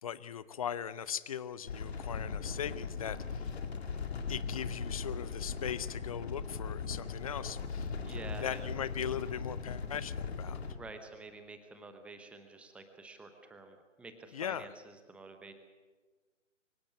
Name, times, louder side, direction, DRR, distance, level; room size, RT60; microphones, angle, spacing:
voice 1, 0.0-3.5 4.3-7.9 8.3-10.6 14.3-14.7, left 8 dB, 30° left, 17 dB, 0.6 m, -39 dB
sound 1, 1.7-10.7, left 5 dB, 55° left, 2.2 m, -39 dB
voice 2, 8.0-8.7 10.6-15.5, right 3 dB, 5° right, 7 dB, 0.8 m, -49 dB
24.0 x 16.5 x 8.3 m, 1.4 s
figure-of-eight pair, 135°, 38 cm